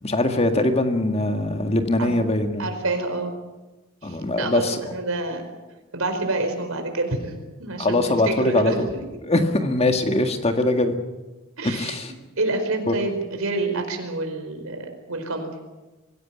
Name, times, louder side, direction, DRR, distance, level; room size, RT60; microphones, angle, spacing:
voice 1, 0.0-2.7 4.0-4.8 7.8-8.9 9.3-11.0 11.6-12.1 12.9-13.0, left 2 dB, 30° left, 6 dB, 1.9 m, -22 dB
voice 2, 2.6-3.3 4.0-5.4 5.9-9.2 11.6-15.5, right 2 dB, 80° right, 5 dB, 4.7 m, -28 dB
24.5 x 16.0 x 9.3 m, 1.1 s
head